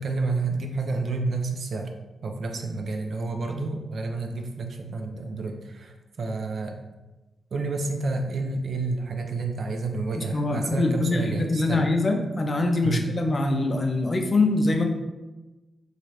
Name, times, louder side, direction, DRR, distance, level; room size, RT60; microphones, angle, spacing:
voice 1, 0.0-1.9 2.2-6.7 7.5-11.9 12.8-13.1, right 3 dB, 60° right, 4 dB, 0.4 m, -29 dB
voice 2, 10.3-14.8, left 2 dB, 35° left, 3 dB, 0.4 m, -24 dB
2.8 x 2.4 x 3.1 m, 1.1 s
cardioid pair, 90°, 0 cm